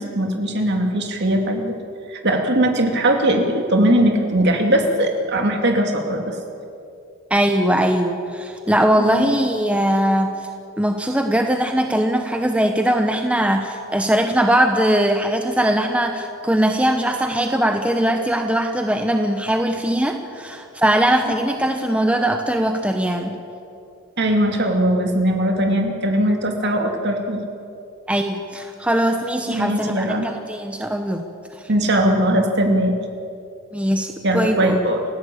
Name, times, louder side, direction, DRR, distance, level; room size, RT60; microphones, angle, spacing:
voice 1, 0.0-1.8 2.1-6.3 9.0-9.3 24.2-27.4 29.5-30.3 31.7-33.0 34.2-35.1, right 1 dB, 50° right, 3 dB, 2.6 m, -20 dB
voice 2, 7.3-10.3 10.8-23.3 28.1-31.2 33.7-34.8, right 1 dB, 5° right, 5 dB, 1.0 m, -20 dB
29.0 x 16.0 x 8.6 m, 2.7 s
head